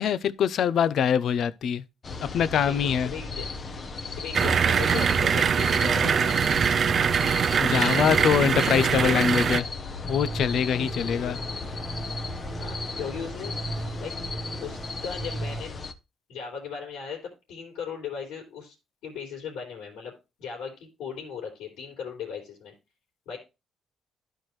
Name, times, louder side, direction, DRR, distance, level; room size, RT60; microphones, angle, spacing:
voice 1, 0.0-1.8 2.2-3.1 7.6-9.7 10.1-11.4, left 8 dB, 70° left, 0.5 m, -24 dB
sound 1, 2.0-15.9, left 3 dB, 45° left, 0.8 m, -36 dB
voice 2, 2.6-3.4 4.1-6.4 7.5-8.9 10.7-11.4 12.6-14.2 14.6-15.8 16.3-18.7 19.0-20.1 20.4-22.7 23.3-23.4, left 6 dB, 90° left, 2.8 m, -37 dB
sound 2, 4.3-9.6, right 7 dB, 50° right, 0.4 m, -23 dB
sound 3, 10.0-15.6, right 2 dB, 25° right, 1.3 m, -37 dB
12.5 x 4.5 x 3.1 m
cardioid pair, 90°, 0 cm